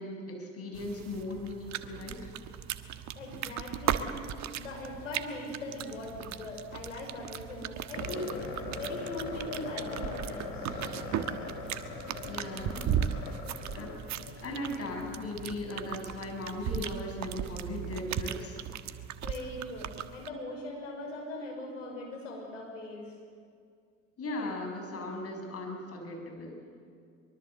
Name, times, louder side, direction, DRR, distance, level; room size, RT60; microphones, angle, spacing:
voice 1, 0.0-2.3 12.2-13.1 13.7-18.6 24.2-26.6, left 2 dB, 40° left, 2 dB, 7.0 m, -38 dB
sound 1, 0.7-20.3, right 9 dB, 50° right, 1.3 m, -37 dB
voice 2, 3.1-4.1 4.6-8.3 8.7-10.5 19.2-23.0, left 1 dB, 80° left, 0 dB, 5.7 m, -40 dB
sound 2, 7.9-14.4, left 4 dB, 60° left, 4.7 m, -40 dB
23.5 x 22.5 x 8.0 m, 2.2 s
figure-of-eight pair, 60°, 37 cm